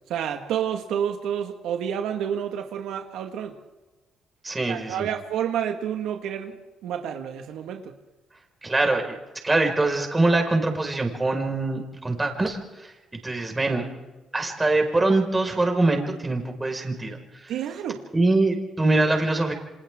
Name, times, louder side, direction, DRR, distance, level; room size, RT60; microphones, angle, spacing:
voice 1, 0.1-3.6 4.7-6.6 6.8-7.9 17.5-18.0, right 9 dB, 85° right, 1.8 m, -29 dB
voice 2, 4.4-5.1 8.6-9.2 9.4-13.9 14.3-17.5 18.1-19.5, right 2 dB, 20° right, 5.3 m, -23 dB
29.0 x 26.5 x 3.7 m
cardioid pair, 90°, 0 cm